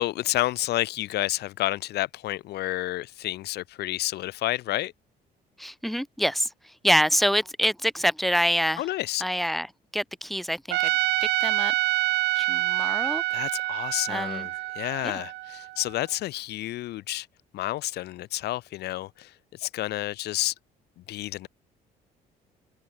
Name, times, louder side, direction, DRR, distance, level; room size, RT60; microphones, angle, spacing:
voice 1, 0.0-4.9 8.8-9.2 13.3-17.3 17.5-20.5 21.1-21.5, left 16 dB, 75° left, 2.3 m, -30 dB
voice 2, 5.6-8.9 9.2-9.7 9.9-10.9 11.4-11.7 12.4-13.2 14.1-14.5 15.0-15.2, equal, ahead, 5.9 m, -26 dB
Trumpet, 10.7-15.9, right 18 dB, 80° right, 1.3 m, -27 dB
cardioid pair, 110°, 17 cm